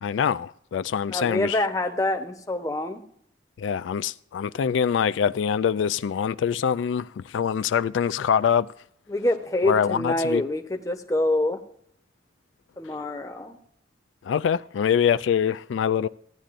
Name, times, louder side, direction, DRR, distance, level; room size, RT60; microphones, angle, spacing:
voice 1, 0.0-1.6 3.6-8.7 9.6-10.4 14.2-16.1, left 7 dB, 90° left, 0.3 m, -24 dB
voice 2, 1.1-3.0 9.1-11.6 12.8-13.6, left 1 dB, 20° left, 0.9 m, -26 dB
16.0 x 10.0 x 2.5 m
head